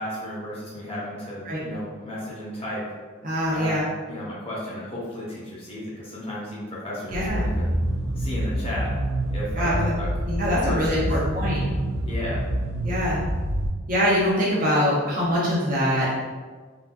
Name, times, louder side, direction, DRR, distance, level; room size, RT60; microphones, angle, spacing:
voice 1, 0.0-2.8 3.5-7.7 8.2-8.9 9.3-10.1 10.7-11.1 12.0-12.4, left 1 dB, 25° left, -7 dB, 0.9 m, -34 dB
voice 2, 3.2-3.8 7.1-7.4 9.6-9.7 10.3-11.6 12.8-13.2 13.9-16.1, equal, 40° right, -6 dB, 0.9 m, -23 dB
sound 1, 7.1-13.7, right 1 dB, 85° right, 0.5 m, -27 dB
3.9 x 2.5 x 2.3 m, 1.4 s
head